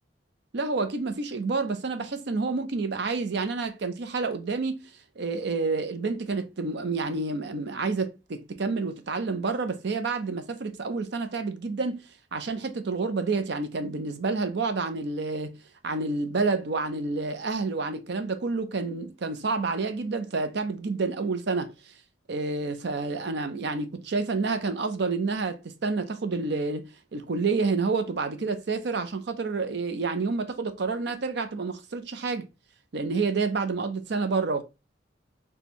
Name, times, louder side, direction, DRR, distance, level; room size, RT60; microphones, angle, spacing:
voice 1, 0.5-4.8 5.2-12.0 12.3-15.6 15.8-21.7 22.3-32.5 32.9-34.6, right 4 dB, 65° right, 0.6 m, -29 dB
4.2 x 2.2 x 2.8 m
head